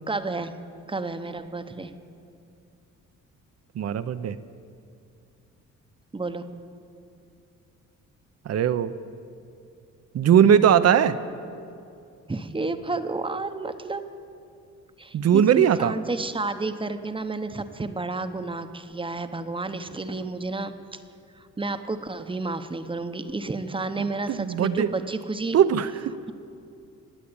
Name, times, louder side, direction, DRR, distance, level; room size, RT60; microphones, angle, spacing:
voice 1, 0.1-0.5 0.9-1.9 6.1-6.5 12.3-14.0 15.0-21.0 21.4-25.6, right 3 dB, 15° right, 8 dB, 0.9 m, -31 dB
voice 2, 3.7-4.4 8.4-8.9 10.1-11.2 15.1-15.9 24.0-24.9 25.5-26.1, right 9 dB, 55° right, 13 dB, 0.8 m, -20 dB
19.5 x 8.4 x 8.7 m, 2.5 s
cardioid pair, 90°, 30 cm